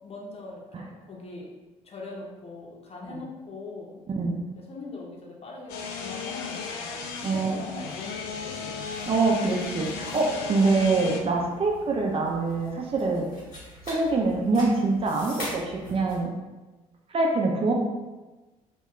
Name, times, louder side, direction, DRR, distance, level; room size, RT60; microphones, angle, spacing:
voice 1, 0.0-1.5 1.8-4.0 4.6-8.8 11.5-11.6, left 3 dB, 35° left, -2 dB, 0.8 m, -41 dB
sound 1, 5.7-11.2, left 5 dB, 65° left, 0.4 m, -35 dB
voice 2, 7.2-7.6 9.1-13.3 13.8-16.3 17.1-17.7, right 3 dB, 35° right, 0 dB, 0.5 m, -25 dB
sound 2, 8.9-16.2, left 1 dB, 80° left, 1.1 m, -44 dB
2.3 x 2.2 x 3.5 m, 1.2 s
figure-of-eight pair, 50°, 18 cm